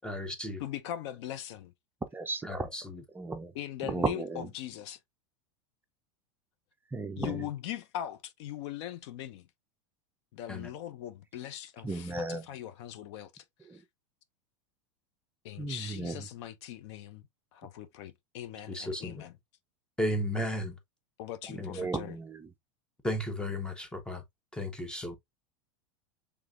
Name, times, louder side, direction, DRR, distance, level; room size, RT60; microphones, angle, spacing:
voice 1, 0.0-0.6 2.4-2.8 10.5-10.7 18.7-19.2 20.0-20.7 21.6-21.8 23.0-24.2 24.5-25.2, left 1 dB, 5° left, 1.0 m, -34 dB
voice 2, 0.6-1.7 3.5-5.0 7.2-9.4 10.3-13.4 13.7-13.8 15.4-17.2 17.5-19.4 21.2-22.2, left 12 dB, 65° left, 0.7 m, -40 dB
voice 3, 2.1-2.7 3.1-3.5 3.8-4.5 6.9-7.5 11.8-12.5 13.6-13.8 15.6-16.3 21.5-22.5, right 3 dB, 15° right, 0.5 m, -35 dB
5.0 x 3.4 x 2.4 m
supercardioid pair, 120°, 15 cm